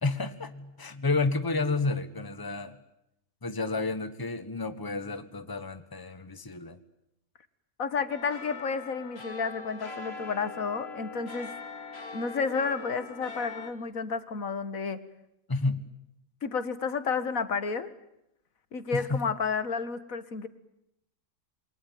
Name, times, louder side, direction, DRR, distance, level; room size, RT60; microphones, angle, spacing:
voice 1, 0.0-2.8 3.4-6.8 15.5-15.9 18.9-19.3, left 3 dB, 15° left, 11 dB, 1.4 m, -31 dB
voice 2, 7.8-11.5 12.1-15.0 16.4-17.9 18.7-20.5, left 5 dB, 80° left, 13 dB, 2.0 m, -31 dB
sound 1, 8.1-13.7, left 4 dB, 50° left, 2.8 m, -42 dB
28.0 x 22.5 x 9.3 m, 0.80 s
omnidirectional pair, 1.4 m